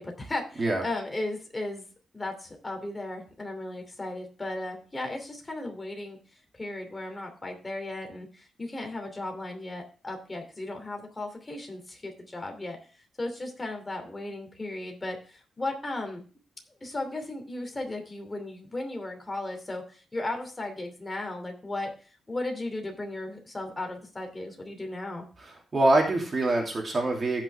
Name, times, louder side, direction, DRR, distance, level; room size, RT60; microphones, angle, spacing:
voice 1, 0.0-1.9 2.1-6.2 6.5-12.8 13.2-16.2 16.8-25.3, left 2 dB, 20° left, 4 dB, 2.7 m, -36 dB
voice 2, 25.7-27.4, right 2 dB, 30° right, 0 dB, 2.7 m, -24 dB
15.5 x 6.0 x 3.4 m, 0.36 s
wide cardioid pair, 135°, 0 cm